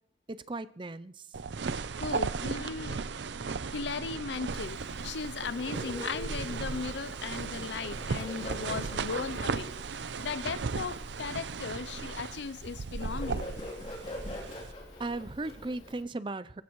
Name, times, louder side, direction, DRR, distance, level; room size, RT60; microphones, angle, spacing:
voice 1, 0.3-1.2 15.0-16.6, right 2 dB, 25° right, 0.5 m, -37 dB
sound 1, 1.3-14.7, right 4 dB, 80° right, 0.6 m, -36 dB
voice 2, 1.9-3.0 3.7-9.7 10.2-13.5, left 5 dB, 75° left, 0.5 m, -37 dB
Bird, 4.4-16.0, equal, 35° left, 3.2 m, -45 dB
25.0 x 15.5 x 3.1 m
head